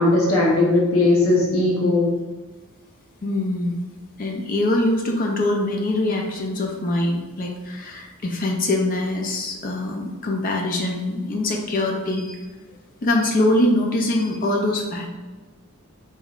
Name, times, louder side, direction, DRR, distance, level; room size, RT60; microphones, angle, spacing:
voice 1, 0.0-2.1, left 2 dB, 70° left, -3 dB, 0.7 m, -18 dB
voice 2, 3.2-3.8 4.2-12.4 13.0-15.1, left 1 dB, 40° left, 1 dB, 0.4 m, -23 dB
4.0 x 3.7 x 2.4 m, 1.2 s
head